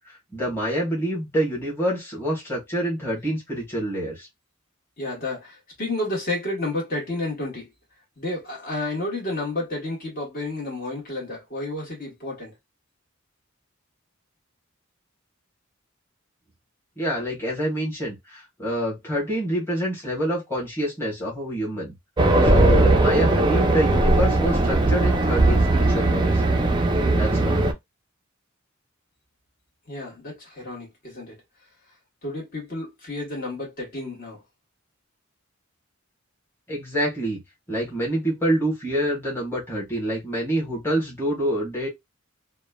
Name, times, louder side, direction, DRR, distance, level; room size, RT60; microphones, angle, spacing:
voice 1, 0.1-4.3 17.0-21.9 22.4-26.4 27.1-27.6 36.7-37.4 37.7-41.9, right 1 dB, 10° left, 1.2 m, -27 dB
voice 2, 5.0-7.7 8.2-12.5 29.9-31.3 32.2-34.4, left 2 dB, 45° left, 1.3 m, -31 dB
Race car auto racing, 22.2-27.7, right 2 dB, 20° right, 0.4 m, -19 dB
2.9 x 2.2 x 2.2 m
head